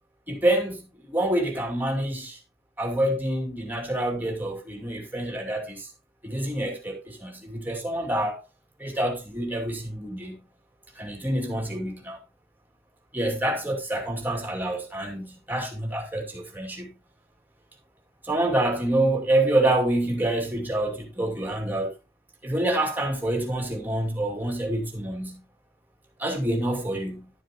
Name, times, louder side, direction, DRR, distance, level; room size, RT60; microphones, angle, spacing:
voice 1, 0.3-2.4 2.8-5.9 6.2-8.4 8.8-10.4 11.0-12.2 13.1-16.9 18.2-21.9 22.4-25.4 26.2-27.3, right 1 dB, 10° right, 2.5 m, -27 dB
11.5 x 7.4 x 3.0 m
head